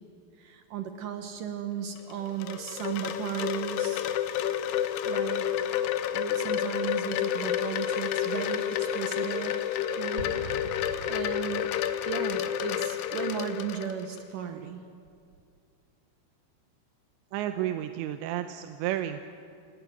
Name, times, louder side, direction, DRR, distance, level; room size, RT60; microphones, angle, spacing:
voice 1, 0.4-4.1 5.0-5.5 6.1-9.6 10.0-10.3 11.0-11.7 12.1-14.8, right 8 dB, 65° right, 7 dB, 2.2 m, -35 dB
Wind chime, 2.0-14.2, left 10 dB, 75° left, 2.9 m, -30 dB
Explosion, 10.2-12.0, equal, 30° right, 3.4 m, -42 dB
voice 2, 17.3-19.2, right 12 dB, 90° right, 8 dB, 3.1 m, -31 dB
29.0 x 18.5 x 9.5 m, 2.4 s
omnidirectional pair, 5.0 m